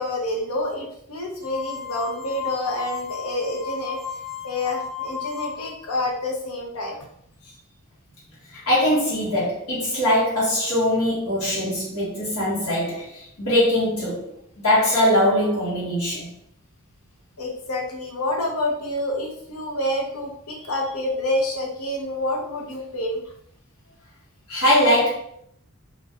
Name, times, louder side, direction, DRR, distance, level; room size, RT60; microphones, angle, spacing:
voice 1, 0.0-4.2 4.4-7.0 7.4-7.5 17.4-23.2, left 1 dB, 70° left, 0 dB, 0.8 m, -28 dB
sound 1, 1.4-5.8, left 8 dB, 15° right, 0.4 m, -34 dB
voice 2, 8.5-14.3 14.6-16.3 24.5-25.1, left 1 dB, 90° left, -8 dB, 1.4 m, -21 dB
2.6 x 2.4 x 3.3 m, 0.72 s
head